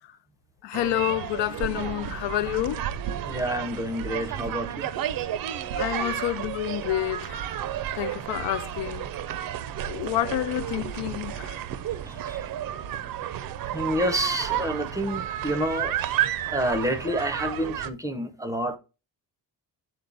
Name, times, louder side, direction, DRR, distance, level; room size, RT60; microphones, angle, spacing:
voice 1, 0.6-2.9 5.8-7.4 7.9-9.1 9.9-11.6, left 15 dB, 85° left, 0.5 m, -29 dB
sound 1, 0.7-17.9, right 11 dB, 55° right, 0.5 m, -32 dB
voice 2, 3.2-4.9 12.1-12.4 13.7-16.1 16.5-18.8, equal, 10° right, 0.6 m, -28 dB
6.9 x 4.3 x 3.8 m
cardioid pair, 165°, 41 cm